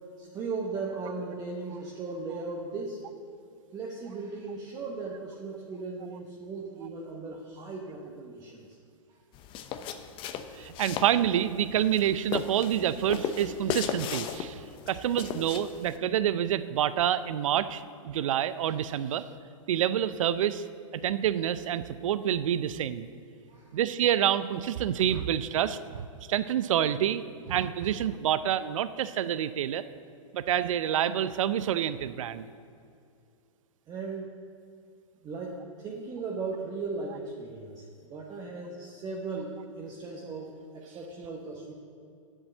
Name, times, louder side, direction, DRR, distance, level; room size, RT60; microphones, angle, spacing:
voice 1, 0.2-3.0 3.7-8.6 23.5-23.8 33.9-34.3 35.2-41.7, right 4 dB, 25° right, -2 dB, 1.1 m, -37 dB
sound 1, 9.3-16.0, left 8 dB, 30° left, 0.7 m, -36 dB
voice 2, 10.5-19.3 19.7-20.7 20.9-23.1 23.7-29.8 30.3-32.5, right 10 dB, 70° right, 14 dB, 0.5 m, -28 dB
7.9 x 7.5 x 7.8 m, 2.4 s
hypercardioid pair, 125°, 17 cm